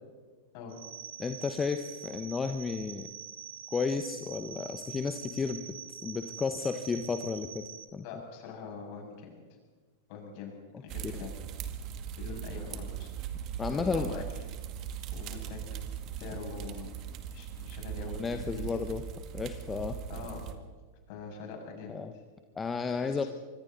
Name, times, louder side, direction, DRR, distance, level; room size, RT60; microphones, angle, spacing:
sound 1, 0.7-7.8, right 9 dB, 70° right, 2.1 m, -45 dB
voice 1, 1.2-3.1 3.7-5.8 6.0-8.0 13.6-14.3 18.2-19.0 19.3-20.0 21.9-22.1 22.6-23.2, left 5 dB, 20° left, 7 dB, 1.2 m, -33 dB
voice 2, 8.0-9.3 10.1-11.3 12.2-13.1 13.7-14.2 15.1-15.6 16.2-16.9 17.3-18.8 20.1-20.4 21.1-22.2 23.0-23.3, left 5 dB, 50° left, 1 dB, 7.0 m, -43 dB
sound 2, 10.9-20.5, right 9 dB, 40° right, 2.0 m, -39 dB
25.0 x 25.0 x 4.1 m, 1.4 s
figure-of-eight pair, 90°, 0 cm